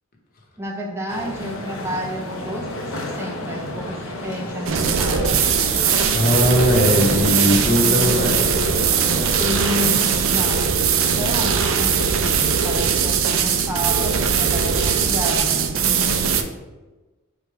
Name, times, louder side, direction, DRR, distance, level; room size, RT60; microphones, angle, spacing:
voice 1, 0.6-5.5 9.4-15.8, equal, 10° right, -2 dB, 0.5 m, -30 dB
sound 1, 1.1-10.0, left 1 dB, 75° left, 0.6 m, -31 dB
sound 2, 4.7-16.4, right 6 dB, 65° right, 0.4 m, -20 dB
voice 2, 6.1-8.4, left 1 dB, 45° left, 0 dB, 0.9 m, -19 dB
4.7 x 2.2 x 4.7 m, 1.2 s
head